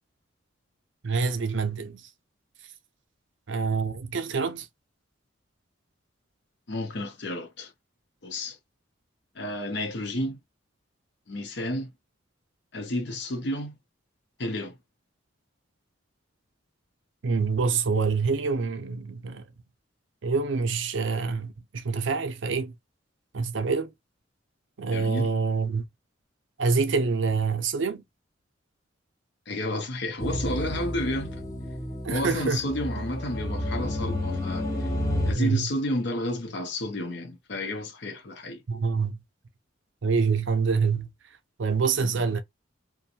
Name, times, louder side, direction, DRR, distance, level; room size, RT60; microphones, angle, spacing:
voice 1, 1.0-2.1 3.5-4.7 17.2-19.4 20.2-22.7 23.3-23.9 24.8-25.9 26.6-28.0 32.0-32.6 33.0-33.1 35.4-35.7 38.7-39.2 40.0-41.1 41.6-42.4, right 5 dB, 65° right, 0.5 m, -26 dB
voice 2, 6.7-7.7 8.2-8.6 9.3-10.4 11.3-11.9 12.7-13.8 14.4-14.8 24.9-25.3 29.5-31.4 32.1-34.9 35.2-38.6 42.0-42.2, left 1 dB, 60° left, 0.7 m, -31 dB
sound 1, 30.2-35.3, left 1 dB, 15° left, 0.6 m, -30 dB
2.5 x 2.2 x 2.8 m
head